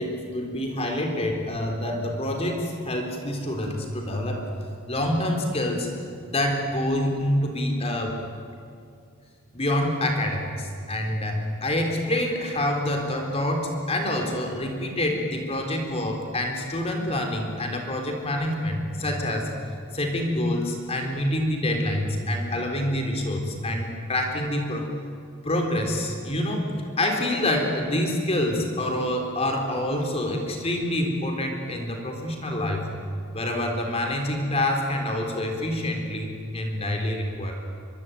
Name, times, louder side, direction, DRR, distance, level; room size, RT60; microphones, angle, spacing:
voice 1, 0.0-4.5 4.9-5.9 6.2-8.2 9.5-19.5 19.9-24.9 25.4-26.7 27.0-32.9 33.3-37.5, left 1 dB, 30° left, 3 dB, 3.8 m, -26 dB
24.0 x 23.5 x 9.3 m, 2.3 s
head